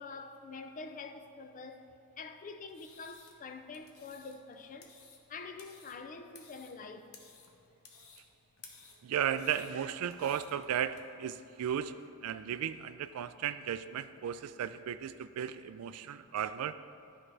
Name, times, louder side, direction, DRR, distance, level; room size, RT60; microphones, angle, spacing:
voice 1, 0.0-1.9 2.2-4.9 5.3-7.1 16.0-16.2, left 4 dB, 35° left, 0.4 m, -46 dB
sound 1, 2.6-11.0, left 5 dB, 70° left, 0.9 m, -58 dB
voice 2, 9.0-16.8, right 9 dB, 80° right, 0.3 m, -35 dB
12.5 x 4.9 x 3.3 m
head